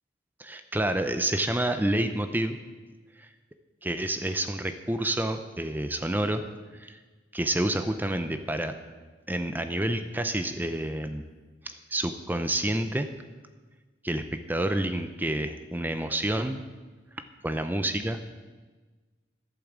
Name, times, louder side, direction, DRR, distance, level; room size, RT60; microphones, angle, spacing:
voice 1, 0.4-2.6 3.2-3.3 3.8-6.4 6.7-7.0 7.3-8.7 9.3-11.2 11.6-13.1 14.0-14.2 14.5-16.6 17.4-18.4, right 1 dB, 10° right, 8 dB, 0.5 m, -28 dB
11.5 x 8.7 x 7.3 m, 1.3 s
head